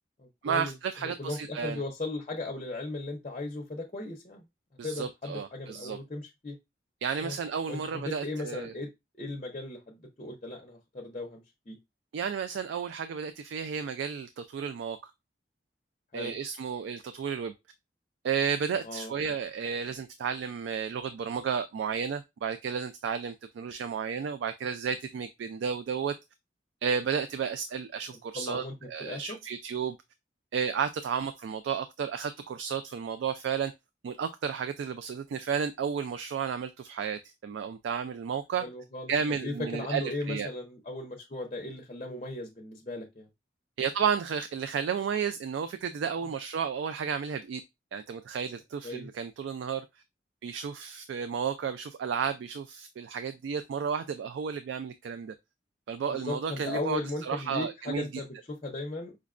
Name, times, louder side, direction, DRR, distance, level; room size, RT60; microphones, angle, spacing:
voice 1, 0.4-1.8 4.8-6.0 7.0-8.7 12.1-15.1 16.1-17.5 18.2-26.1 26.8-30.0 30.5-33.7 34.0-38.7 39.1-40.5 43.8-47.6 47.9-49.8 50.4-55.3 55.9-58.2, right 6 dB, 85° right, 0.3 m, -32 dB
voice 2, 1.0-4.4 4.8-6.6 7.2-7.4 7.7-8.9 9.2-11.8 16.1-16.3 18.8-19.1 28.3-29.4 38.6-39.1 39.4-43.3 48.8-49.1 56.1-59.2, left 2 dB, 35° left, 0.6 m, -37 dB
5.0 x 2.2 x 2.4 m
head